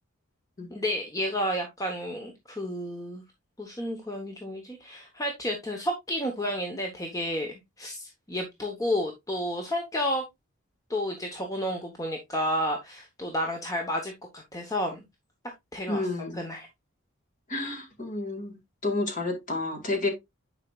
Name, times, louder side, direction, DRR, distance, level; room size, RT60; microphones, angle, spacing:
voice 1, 0.7-3.2 3.6-10.2 10.9-15.0 15.7-16.1 16.3-16.7, equal, 15° left, 0.9 m, -31 dB
voice 2, 15.9-16.4 17.5-20.1, left 2 dB, 35° left, 1.9 m, -30 dB
9.8 x 4.9 x 2.3 m
head